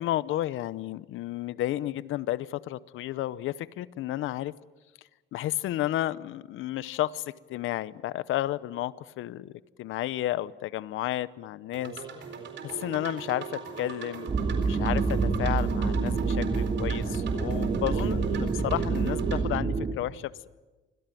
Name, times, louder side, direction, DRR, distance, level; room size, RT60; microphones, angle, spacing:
voice 1, 0.0-4.5 5.3-7.2 7.5-9.5 9.8-11.9 12.6-20.5, left 14 dB, 85° left, 19 dB, 0.8 m, -32 dB
sound 1, 11.7-19.4, right 6 dB, 65° right, 4.1 m, -37 dB
sound 2, 14.3-19.9, right 4 dB, 35° right, 2.9 m, -27 dB
25.0 x 17.5 x 9.2 m, 1.2 s
cardioid pair, 90°, 20 cm